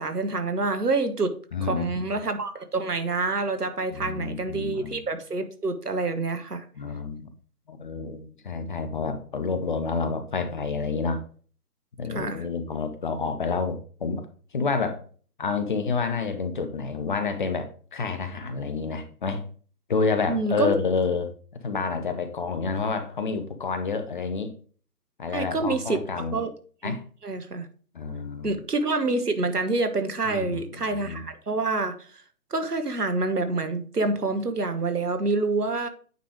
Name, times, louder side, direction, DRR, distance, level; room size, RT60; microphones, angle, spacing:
voice 1, 0.0-1.3 1.6-6.6 12.1-12.4 20.3-20.7 25.3-26.0 26.3-26.5 26.8-26.9 27.2-27.7 28.4-32.2 32.5-35.9, right 3 dB, 80° right, 8 dB, 1.3 m, -27 dB
voice 2, 1.5-1.9 3.9-5.0 6.8-7.3 7.7-11.2 12.0-14.2 14.5-15.0 15.4-19.5 19.9-21.3 21.6-24.5 25.2-26.4 26.8-27.0 27.9-28.6 30.2-30.6 30.9-31.2, left 4 dB, 35° left, 9 dB, 0.7 m, -29 dB
9.1 x 3.3 x 4.9 m, 0.42 s
figure-of-eight pair, 135°, 46 cm